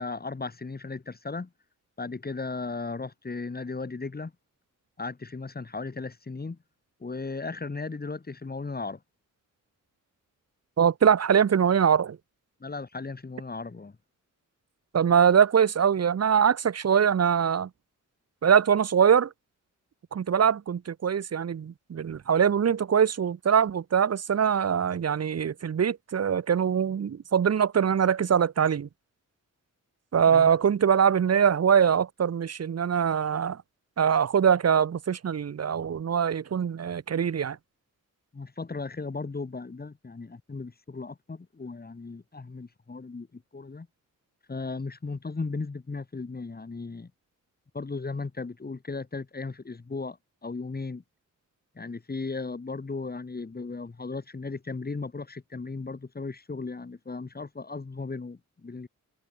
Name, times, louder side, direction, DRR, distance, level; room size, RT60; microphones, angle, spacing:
voice 1, 0.0-1.5 2.0-4.3 5.0-6.6 7.0-9.0 12.6-14.0 30.3-30.5 38.3-43.9 44.5-47.1 47.7-50.2 50.4-51.0 51.7-58.9, left 3 dB, 30° left, 2.8 m, -36 dB
voice 2, 10.8-12.2 14.9-17.7 18.4-19.3 20.1-28.9 30.1-33.6 34.0-37.6, right 7 dB, 50° right, 1.1 m, -23 dB
wide cardioid pair, 105°, 32 cm